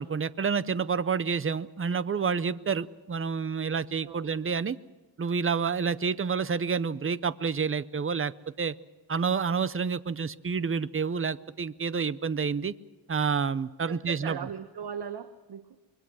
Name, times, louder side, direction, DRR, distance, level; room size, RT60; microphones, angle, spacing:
voice 1, 0.0-4.8 5.2-8.3 8.6-8.7 9.1-12.7 13.1-14.4, right 5 dB, 30° right, 16 dB, 0.6 m, -29 dB
voice 2, 13.9-15.8, right 7 dB, 60° right, 10 dB, 1.1 m, -39 dB
25.5 x 22.5 x 6.2 m, 1.2 s
wide cardioid pair, 130°, 45 cm